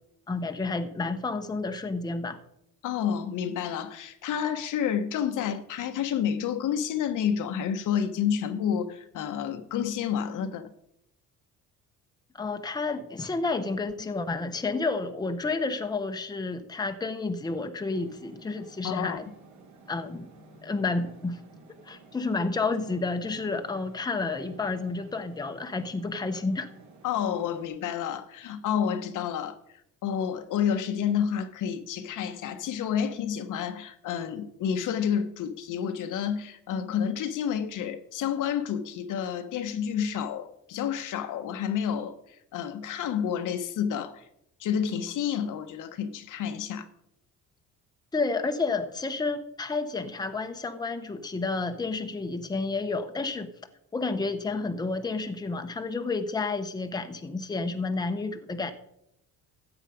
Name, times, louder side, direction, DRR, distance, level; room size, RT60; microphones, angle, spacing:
voice 1, 0.3-2.4 12.3-19.2 19.9-20.3 20.6-21.4 21.9-26.7 48.1-53.5 53.9-58.7, left 3 dB, 10° left, 0.9 m, -30 dB
voice 2, 2.8-10.7 18.8-19.2 27.0-29.6 30.0-44.2 44.6-46.9, left 8 dB, 65° left, 1.1 m, -29 dB
sound 1, 17.9-27.7, right 2 dB, 55° right, 3.5 m, -53 dB
14.0 x 8.2 x 5.0 m
cardioid pair, 115°, 33 cm